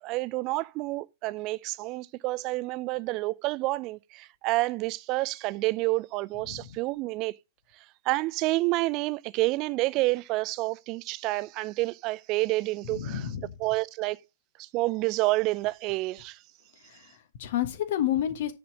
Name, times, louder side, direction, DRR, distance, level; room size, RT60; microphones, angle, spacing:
voice 1, 0.0-7.4 8.0-13.2 13.6-14.2 14.6-16.4, right 20 dB, 35° right, 0.4 m, -29 dB
voice 2, 6.4-6.8 12.8-13.6 16.8-18.5, left 11 dB, 55° left, 1.3 m, -31 dB
9.6 x 4.3 x 5.0 m
figure-of-eight pair, 100°, 0 cm